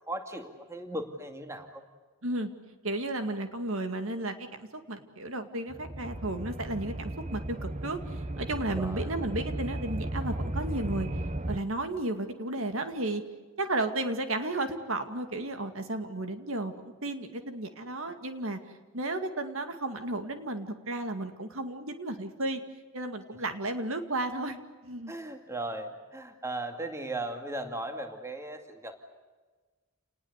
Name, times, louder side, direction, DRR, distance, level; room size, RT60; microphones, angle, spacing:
voice 1, 0.1-1.8 8.7-9.1 25.1-28.9, right 1 dB, 15° right, 5 dB, 2.3 m, -37 dB
voice 2, 2.8-11.1 11.5-13.2 13.6-18.6 18.9-22.6 22.9-25.1, right 2 dB, 65° right, 7 dB, 2.2 m, -33 dB
sound 1, 5.7-11.6, right 1 dB, 30° right, 1.1 m, -35 dB
29.0 x 20.0 x 8.2 m, 1.3 s
head